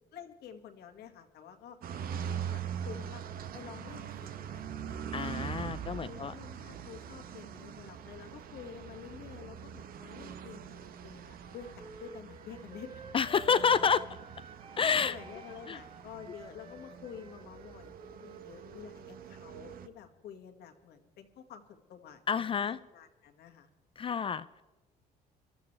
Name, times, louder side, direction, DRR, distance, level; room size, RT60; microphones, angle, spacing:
voice 1, 0.1-1.8 2.1-3.2 3.5-5.0 5.9-13.0 14.8-23.7, left 8 dB, 75° left, 5 dB, 1.9 m, -49 dB
sound 1, 1.8-19.9, right 8 dB, 60° right, 1.0 m, -43 dB
voice 2, 5.1-6.3 13.1-14.0 14.8-15.2 15.7-15.8 22.3-22.8 24.0-24.6, left 6 dB, 30° left, 13 dB, 0.4 m, -29 dB
Wind instrument woodwind instrument, 11.3-14.9 15.1-19.0, right 1 dB, 30° right, 1.5 m, -52 dB
23.0 x 13.0 x 3.3 m, 1.2 s
cardioid pair, 110°, 17 cm